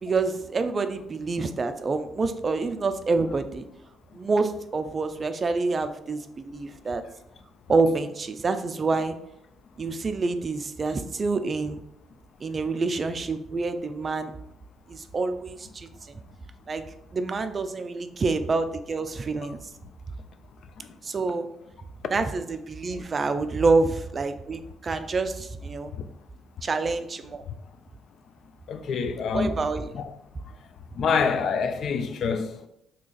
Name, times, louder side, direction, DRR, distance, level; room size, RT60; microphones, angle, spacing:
voice 1, 0.0-3.6 4.1-7.0 7.7-9.1 9.8-11.8 12.4-14.3 14.9-15.9 16.7-16.8 17.1-19.6 21.0-21.5 22.1-25.9 26.6-27.4 29.3-29.9, right 3 dB, 40° right, 0.3 m, -27 dB
voice 2, 28.7-29.6 29.9-30.1 31.0-32.7, left 5 dB, 65° left, 0.3 m, -26 dB
2.8 x 2.4 x 3.9 m
cardioid pair, 90°, 0 cm